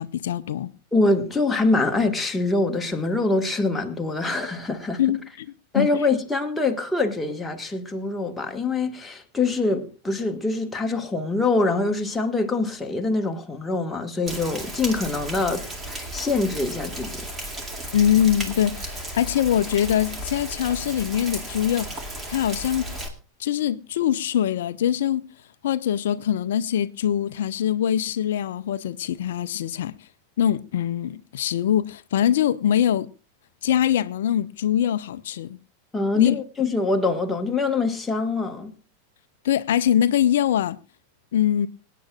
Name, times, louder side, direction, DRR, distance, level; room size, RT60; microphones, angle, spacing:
voice 1, 0.0-0.7 5.0-5.5 5.7-5.9 17.9-21.9 22.3-22.9 23.4-25.2 25.6-29.9 30.4-33.1 33.6-35.6 36.1-36.4 39.4-40.8 41.3-41.7, left 10 dB, 60° left, 0.5 m, -23 dB
voice 2, 0.9-5.0 5.7-17.3 35.9-38.7, left 3 dB, 10° left, 1.5 m, -24 dB
Rain, 14.3-23.1, right 1 dB, 15° right, 2.3 m, -34 dB
26.0 x 9.2 x 2.3 m
figure-of-eight pair, 90°, 0 cm